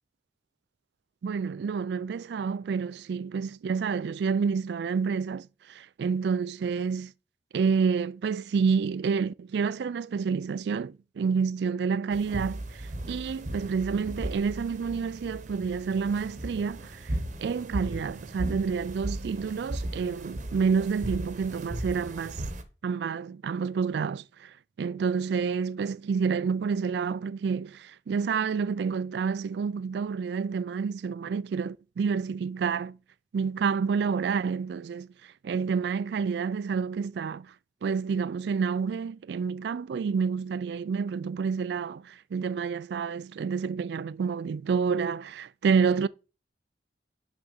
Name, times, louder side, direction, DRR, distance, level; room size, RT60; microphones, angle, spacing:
voice 1, 1.2-7.1 7.5-22.4 22.8-33.0 33.3-37.5 37.8-46.1, right 5 dB, 60° right, 0.3 m, -29 dB
sound 1, 12.1-22.6, right 1 dB, 40° right, 0.9 m, -36 dB
6.3 x 5.9 x 5.3 m
head